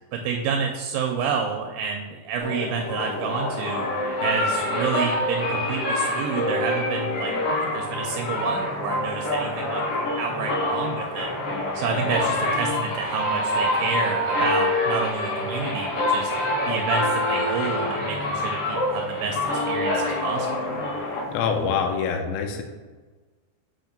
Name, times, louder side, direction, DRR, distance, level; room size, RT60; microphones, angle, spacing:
voice 1, 0.1-3.9 4.2-9.8 10.2-11.3 11.7-16.3 16.7-19.4 19.7-20.8, right 5 dB, 80° right, 3 dB, 2.2 m, -29 dB
sound 1, 2.4-21.8, left 1 dB, 60° left, 3.5 m, -26 dB
voice 2, 21.3-22.6, left 6 dB, 80° left, 4 dB, 2.3 m, -25 dB
7.9 x 2.8 x 5.1 m, 1.3 s
omnidirectional pair, 4.6 m